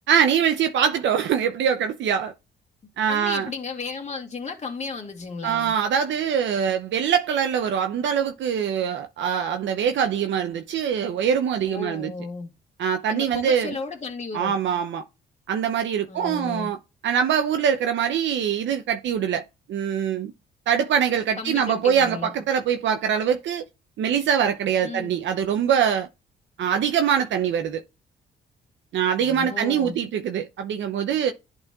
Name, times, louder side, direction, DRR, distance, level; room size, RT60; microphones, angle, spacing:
voice 1, 0.1-2.3 3.0-3.5 5.4-12.1 12.8-13.7 14.3-15.0 15.5-16.8 17.0-20.3 20.7-23.6 24.0-26.1 26.6-27.8 28.9-31.3, right 8 dB, 70° right, 0.7 m, -23 dB
voice 2, 3.1-5.7 11.7-12.5 13.1-14.6 16.1-16.7 21.4-22.3 24.8-25.1 29.2-30.0, left 4 dB, 35° left, 2.2 m, -34 dB
10.5 x 4.1 x 2.4 m
cardioid pair, 90°, 20 cm